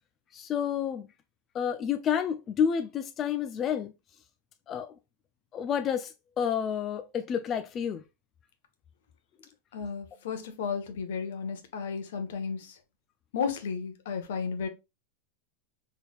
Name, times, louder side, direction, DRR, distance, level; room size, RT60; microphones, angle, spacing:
voice 1, 0.3-1.1 1.5-3.9 4.7-4.9 5.5-8.0, left 8 dB, 30° left, 0.3 m, -29 dB
voice 2, 9.7-12.8 13.3-14.7, left 6 dB, 80° left, 1.0 m, -33 dB
4.3 x 3.4 x 2.3 m
supercardioid pair, 130°, 0 cm